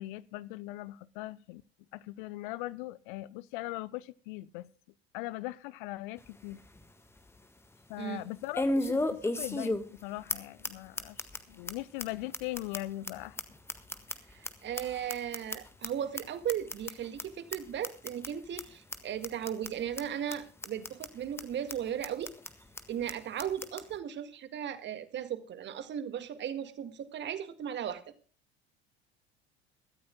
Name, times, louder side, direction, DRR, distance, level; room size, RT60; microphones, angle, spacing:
voice 1, 0.0-1.6 1.9-4.7 5.1-6.6 7.9-13.4, left 18 dB, 50° left, 19 dB, 0.6 m, -40 dB
sound 1, 6.2-6.3 6.8-6.9 8.5-10.0 10.3-10.4 10.6-10.7 11.0-11.4 11.7-11.8 12.0-12.1 12.3-14.5 14.8-15.9 16.2-16.3 16.5-16.9 17.2-17.3 17.5-17.6 17.8-18.3 18.6-18.7 18.9-19.0 19.2-19.7 20.0-20.1 20.3-20.4 20.6-21.1 21.4-21.5 21.7-21.8 22.0-22.5 22.8-22.9 23.1-23.2 23.4-23.8, left 1 dB, 10° left, 1.6 m, -33 dB
voice 2, 14.3-22.3 22.9-28.0, right 9 dB, 35° right, 10 dB, 2.0 m, -36 dB
23.0 x 14.0 x 2.2 m, 0.39 s
figure-of-eight pair, 70°, 32 cm